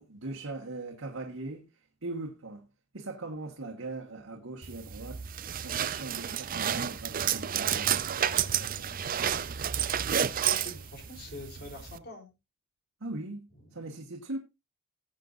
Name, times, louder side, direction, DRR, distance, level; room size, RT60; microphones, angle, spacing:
voice 1, 0.0-1.6 2.0-2.7 2.9-5.2 5.6-9.0 13.0-14.4, right 2 dB, 85° right, 1.6 m, -40 dB
sound 1, 4.6-12.0, right 9 dB, 45° right, 0.5 m, -30 dB
voice 2, 10.4-12.3 13.6-13.8, left 1 dB, 50° left, 3.9 m, -45 dB
18.0 x 7.8 x 2.7 m
head